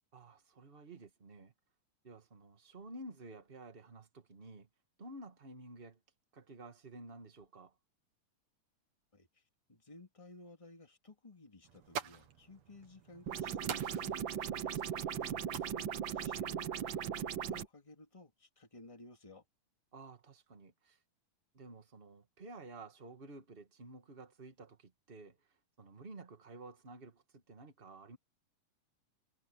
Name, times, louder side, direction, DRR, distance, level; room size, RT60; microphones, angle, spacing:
voice 1, 0.1-1.5 2.0-4.7 5.0-6.0 6.3-7.7 15.1-15.5 19.9-21.0 21.5-28.2, right 2 dB, 25° right, 1.3 m, -52 dB
voice 2, 9.1-9.4 9.7-19.4, left 2 dB, 10° left, 2.5 m, -56 dB
sound 1, 11.6-17.6, right 8 dB, 55° right, 2.7 m, -48 dB
sound 2, 13.3-17.7, right 8 dB, 80° right, 1.0 m, -38 dB
omnidirectional pair, 3.8 m